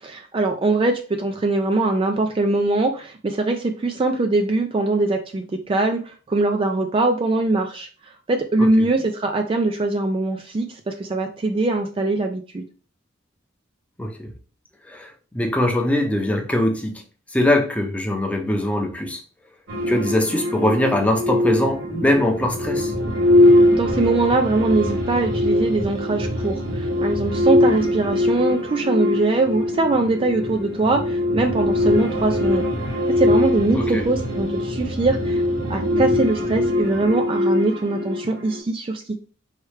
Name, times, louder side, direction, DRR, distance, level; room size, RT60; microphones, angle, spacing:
voice 1, 0.0-7.9 8.3-12.6 23.4-32.7 33.1-35.4 35.7-39.2, right 2 dB, 25° right, 0.3 m, -22 dB
voice 2, 14.0-14.3 14.9-17.0 17.3-19.2 19.9-22.9 33.7-34.0, left 1 dB, 5° left, 0.6 m, -22 dB
sound 1, 19.7-38.6, left 1 dB, 75° right, 1.2 m, -22 dB
4.6 x 3.1 x 3.2 m
head